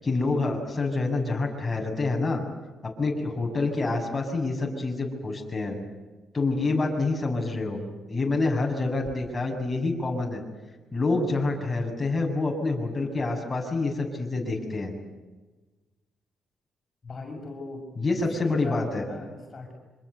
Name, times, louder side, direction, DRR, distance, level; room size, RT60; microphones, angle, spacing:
voice 1, 0.0-2.4 3.0-5.8 6.3-7.8 8.1-10.4 10.9-14.9 18.0-19.0, left 3 dB, 20° left, 0 dB, 6.9 m, -27 dB
voice 2, 17.0-17.9 18.3-19.7, left 3 dB, 40° left, 1 dB, 6.4 m, -39 dB
26.5 x 25.0 x 8.2 m, 1.2 s
cardioid pair, 90°, 0 cm